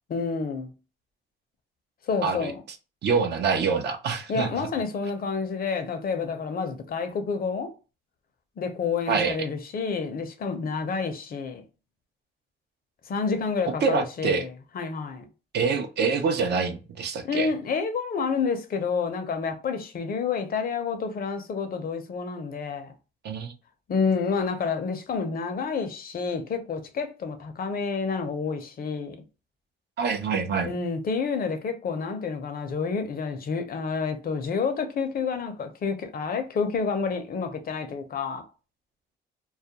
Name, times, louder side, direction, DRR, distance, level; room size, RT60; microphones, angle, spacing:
voice 1, 0.1-0.7 2.1-2.6 4.3-7.7 8.6-11.6 13.1-14.5 14.7-15.3 17.2-22.9 23.9-29.2 30.6-38.4, left 5 dB, 50° left, 0.6 m, -29 dB
voice 2, 3.0-4.5 9.1-9.4 13.8-14.5 15.5-17.5 23.2-23.5 30.0-30.7, right 5 dB, 60° right, 0.5 m, -25 dB
2.3 x 2.1 x 2.8 m
cardioid pair, 90°, 20 cm